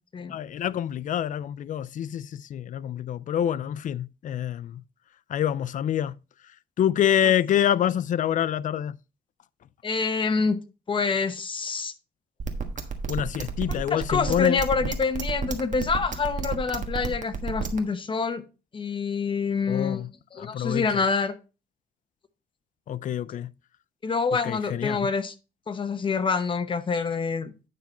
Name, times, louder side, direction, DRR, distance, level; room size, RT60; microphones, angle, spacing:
voice 1, 0.3-4.8 5.3-6.2 6.8-9.0 13.1-14.6 19.7-20.1 20.4-20.9 22.9-23.5 24.4-25.1, left 10 dB, 50° left, 0.4 m, -26 dB
voice 2, 9.8-10.6 10.9-11.9 13.9-18.4 18.7-20.0 20.3-21.3 24.0-25.3 25.7-27.5, left 5 dB, 30° left, 0.9 m, -26 dB
sound 1, 12.4-17.8, right 5 dB, 45° right, 1.4 m, -30 dB
9.4 x 5.9 x 4.2 m
cardioid pair, 145°, 17 cm